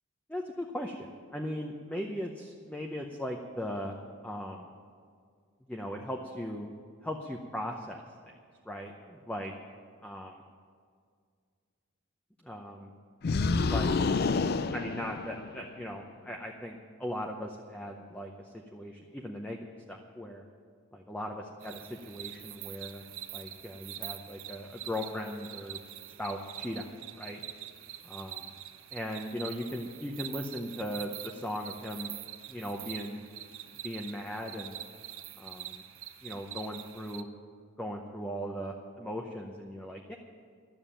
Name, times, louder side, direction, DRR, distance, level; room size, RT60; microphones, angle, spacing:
voice 1, 0.3-3.9 4.2-4.7 5.7-6.7 7.0-8.3 8.6-9.5 10.0-10.4 12.4-12.9 13.7-13.9 14.7-19.6 19.9-20.4 20.9-23.0 23.3-25.8 26.2-27.4 28.0-28.5 28.9-32.1 32.5-33.2 33.8-34.7 35.4-35.8 36.2-37.3 37.8-40.2, equal, 5° left, 1 dB, 0.7 m, -38 dB
sound 1, 13.2-15.7, left 4 dB, 45° left, 0.4 m, -28 dB
sound 2, 21.6-37.2, right 12 dB, 65° right, 0.7 m, -45 dB
12.5 x 7.3 x 9.9 m, 2.1 s
head